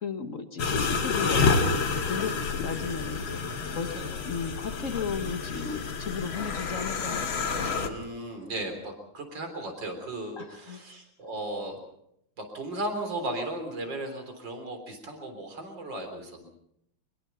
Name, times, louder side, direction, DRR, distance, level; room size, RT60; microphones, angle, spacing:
voice 1, 0.0-3.4 3.7-3.9 4.2-7.3 10.4-10.8, left 5 dB, 45° left, 8 dB, 1.3 m, -35 dB
sound 1, 0.6-7.9, left 4 dB, 65° left, 2.5 m, -29 dB
voice 2, 7.8-11.8 12.4-16.4, right 1 dB, 55° right, 5 dB, 4.4 m, -36 dB
23.5 x 21.5 x 5.7 m, 0.76 s
omnidirectional pair, 2.4 m